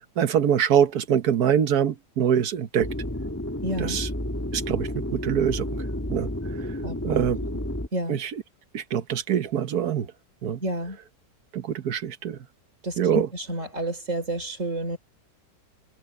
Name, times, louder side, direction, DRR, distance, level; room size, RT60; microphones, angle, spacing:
voice 1, 0.2-2.9 3.8-4.1 4.5-5.6 6.1-6.3 7.0-7.4 8.1-8.3 8.7-10.1 10.4-10.6 11.5-12.4 13.0-13.3, right 9 dB, 65° right, 1.5 m, -24 dB
sound 1, 2.8-7.9, left 1 dB, 10° left, 1.7 m, -31 dB
voice 2, 3.6-4.0 6.8-7.3 7.9-8.2 10.6-11.0 12.8-15.0, right 1 dB, 45° right, 4.9 m, -30 dB
omnidirectional pair, 1.8 m